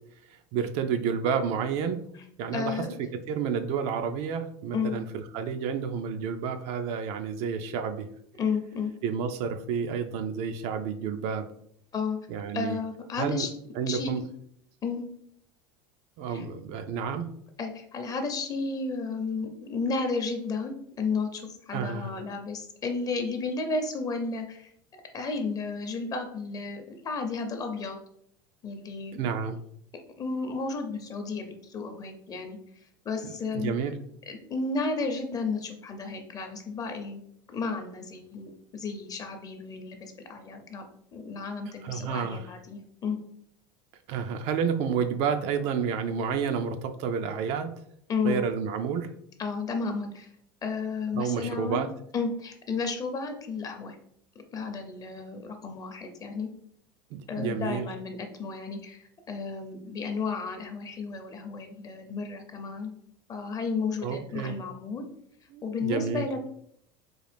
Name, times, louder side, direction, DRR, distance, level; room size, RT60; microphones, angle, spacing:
voice 1, 0.3-2.0 2.4-2.8 3.3-8.1 9.0-11.5 12.3-12.8 13.2-13.5 13.8-14.2 16.2-17.3 21.7-22.1 29.2-29.6 33.2-33.9 41.8-42.5 44.1-47.7 48.2-49.1 51.1-51.9 57.1-57.9 64.0-64.6 65.5-66.3, right 6 dB, 60° right, 8 dB, 0.4 m, -30 dB
voice 2, 2.5-2.9 4.7-5.0 8.4-8.9 11.9-12.2 12.5-13.5 13.9-14.2 14.8-15.0 16.3-16.4 17.6-28.0 28.6-29.2 30.2-32.6 33.0-33.7 34.3-37.2 37.5-40.8 41.1-43.2 48.1-48.4 49.4-50.3 50.6-51.8 52.1-54.0 54.5-56.5 57.3-62.9 63.3-65.0 65.6-66.5, left 4 dB, 30° left, 5 dB, 0.6 m, -32 dB
3.8 x 2.4 x 3.4 m, 0.69 s
supercardioid pair, 110°, 12 cm